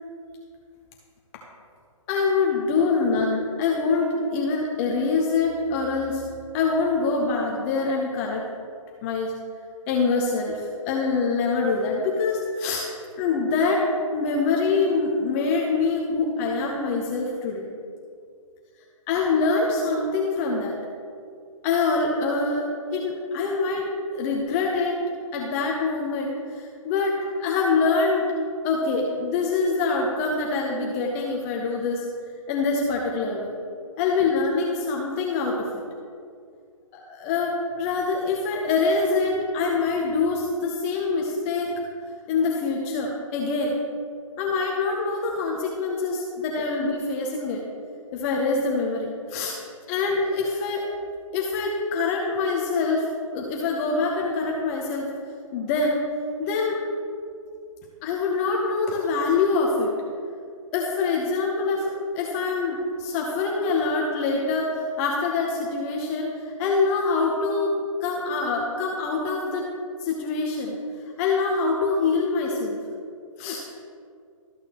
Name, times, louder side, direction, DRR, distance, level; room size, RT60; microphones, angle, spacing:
voice 1, 2.1-6.2 6.5-8.4 9.0-9.3 9.9-12.9 13.2-13.8 14.1-17.7 19.1-20.8 21.6-25.0 25.3-28.2 28.6-32.0 32.5-33.5 34.0-35.7 36.9-41.7 42.3-43.8 44.4-47.6 48.1-49.5 49.9-50.9 51.3-53.1 53.3-55.1 55.5-56.0 56.4-56.8 58.0-59.9 60.7-67.7 68.0-69.7 70.0-70.8 71.2-72.8 73.4-73.6, left 4 dB, 25° left, -1 dB, 0.8 m, -25 dB
13.5 x 6.7 x 3.0 m, 2.3 s
figure-of-eight pair, 135°, 18 cm